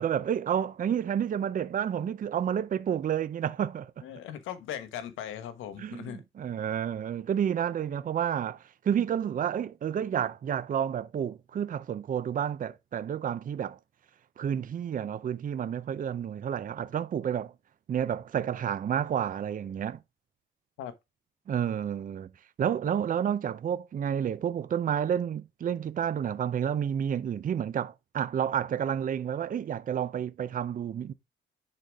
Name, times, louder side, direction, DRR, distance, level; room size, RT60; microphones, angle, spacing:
voice 1, 0.0-3.9 5.8-13.8 14.4-17.5 17.9-20.0 21.5-22.3 22.6-31.1, right 9 dB, 45° right, 0.6 m, -30 dB
voice 2, 4.0-6.2 20.8-20.9, left 10 dB, 90° left, 1.2 m, -39 dB
10.0 x 4.2 x 3.5 m
cardioid pair, 90°, 20 cm